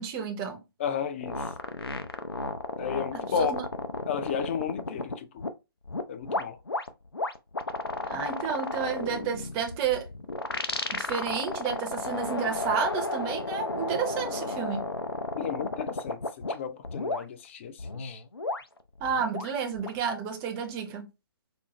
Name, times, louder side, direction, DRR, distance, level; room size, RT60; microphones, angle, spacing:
voice 1, 0.0-0.6 3.4-3.7 8.0-10.1 10.9-14.9 19.0-21.1, right 7 dB, 20° right, 0.5 m, -31 dB
voice 2, 0.8-1.5 2.8-3.6 4.1-5.4 6.1-6.6 15.4-18.2, left 7 dB, 30° left, 0.4 m, -33 dB
sound 1, 1.2-5.5 5.8-16.5 16.8-17.2 17.8-20.0, left 2 dB, 85° left, 0.5 m, -33 dB
4.1 x 2.0 x 2.9 m
figure-of-eight pair, 135°, 12 cm